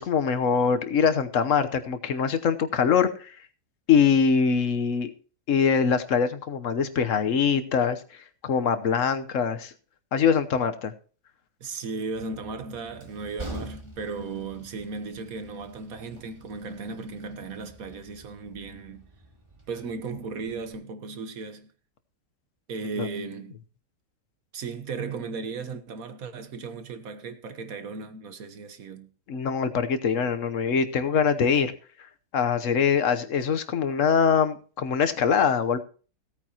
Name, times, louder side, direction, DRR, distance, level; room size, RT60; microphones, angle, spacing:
voice 1, 0.0-3.4 3.9-5.1 5.5-8.0 8.4-9.7 10.1-10.9 23.0-23.1 29.3-31.7 32.3-35.8, left 6 dB, 55° left, 1.2 m, -23 dB
voice 2, 11.6-19.0 19.7-21.7 22.7-23.6 24.5-29.1, right 4 dB, 60° right, 1.5 m, -36 dB
Train, 12.1-20.7, right 2 dB, 15° right, 2.1 m, -46 dB
17.0 x 9.0 x 2.9 m
omnidirectional pair, 1.8 m